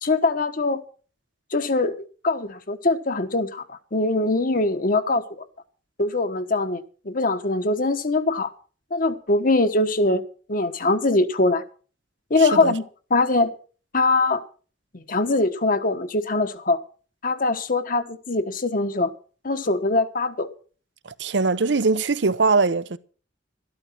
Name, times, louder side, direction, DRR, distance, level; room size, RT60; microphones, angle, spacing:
voice 1, 0.0-0.8 1.5-1.9 2.2-5.4 6.0-8.5 8.9-10.2 10.5-11.6 12.3-12.8 13.1-13.5 13.9-14.4 15.1-16.8 17.2-19.1 19.4-20.5, left 2 dB, 50° left, 1.3 m, -22 dB
voice 2, 12.4-12.7 21.1-23.0, right 4 dB, 70° right, 0.8 m, -22 dB
13.0 x 12.5 x 5.9 m
head